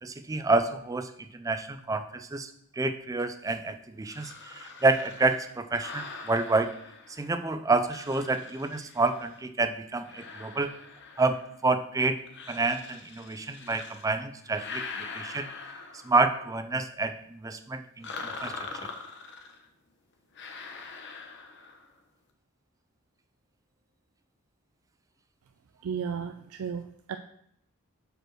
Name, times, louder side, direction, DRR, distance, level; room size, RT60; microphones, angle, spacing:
voice 1, 0.0-6.7 7.1-10.7 11.2-12.2 12.5-15.5 16.0-18.7, right 3 dB, 15° right, 9 dB, 0.3 m, -28 dB
sound 1, 4.1-7.4 7.9-9.4 10.0-11.7 12.3-14.1 14.4-16.4 18.0-19.7 20.4-21.9, left 4 dB, 55° left, 0.8 m, -43 dB
voice 2, 25.8-27.2, right 6 dB, 85° right, 7 dB, 0.4 m, -34 dB
6.1 x 5.1 x 4.5 m, 0.73 s
head